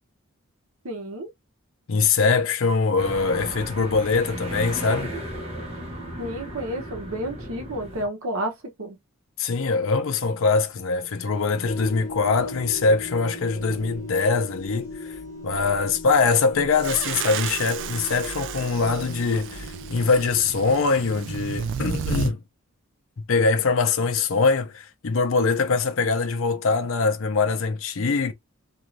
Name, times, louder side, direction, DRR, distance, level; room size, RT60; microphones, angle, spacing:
voice 1, 0.8-1.3 6.2-9.0 12.2-12.3, right 1 dB, 75° right, 0.9 m, -31 dB
voice 2, 1.9-5.1 9.4-22.4 23.2-28.3, left 4 dB, 65° left, 0.6 m, -23 dB
sound 1, 3.0-8.1, equal, 30° right, 1.0 m, -35 dB
sound 2, 11.6-20.8, left 1 dB, 15° left, 1.2 m, -38 dB
sound 3, 16.8-22.3, right 7 dB, 55° right, 0.3 m, -32 dB
2.6 x 2.4 x 3.1 m
head